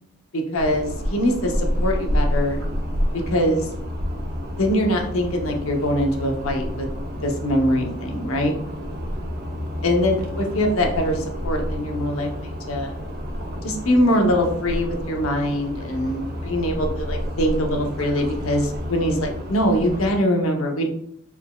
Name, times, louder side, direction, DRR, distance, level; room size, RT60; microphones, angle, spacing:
voice 1, 0.3-2.6 3.3-3.7 4.6-6.9 7.2-8.5 9.8-12.9 13.6-20.9, equal, 85° left, 3 dB, 0.8 m, -23 dB
sound 1, 0.5-20.2, equal, 50° right, 0.8 m, -29 dB
4.5 x 3.9 x 2.3 m, 0.69 s
head